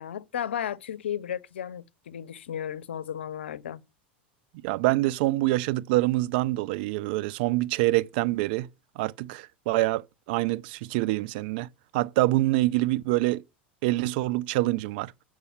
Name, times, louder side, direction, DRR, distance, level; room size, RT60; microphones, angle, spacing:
voice 1, 0.0-3.8, left 9 dB, 80° left, 0.6 m, -34 dB
voice 2, 4.6-8.7 9.0-11.7 11.9-13.4 13.8-15.1, right 18 dB, 60° right, 0.5 m, -25 dB
8.3 x 4.7 x 7.1 m
hypercardioid pair, 90°, 6 cm